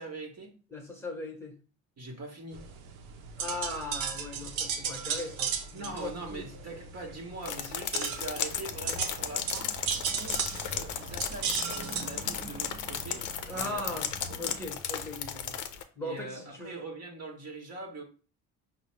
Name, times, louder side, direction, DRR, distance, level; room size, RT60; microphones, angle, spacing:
voice 1, 0.0-0.5 2.0-2.6 5.7-9.7 10.1-10.4 10.7-13.3 13.5-14.0 14.3-14.4 16.0-18.0, right 2 dB, 40° right, 1.1 m, -42 dB
voice 2, 0.7-1.5 3.4-6.4 13.5-14.1 14.4-15.6 15.9-16.8, left 2 dB, 5° left, 1.1 m, -39 dB
sound 1, 2.5-14.3, right 7 dB, 80° right, 0.7 m, -36 dB
sound 2, 7.4-15.8, left 8 dB, 45° left, 0.6 m, -35 dB
Cricket / Motor vehicle (road), 8.4-14.7, right 3 dB, 15° right, 0.7 m, -49 dB
4.9 x 2.1 x 3.1 m
hypercardioid pair, 65°, 41 cm